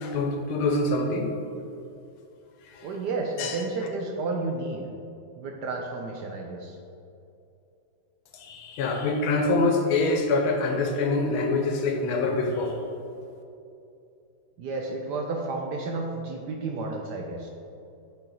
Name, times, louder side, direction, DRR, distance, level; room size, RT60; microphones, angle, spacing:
voice 1, 0.0-1.3 2.8-2.9 3.4-3.6 8.3-12.8, left 3 dB, 80° left, 3 dB, 1.7 m, -25 dB
voice 2, 2.8-4.8 5.4-6.8 14.6-17.5, right 3 dB, 70° right, 1 dB, 1.1 m, -31 dB
8.8 x 4.8 x 3.9 m, 2.6 s
omnidirectional pair, 2.2 m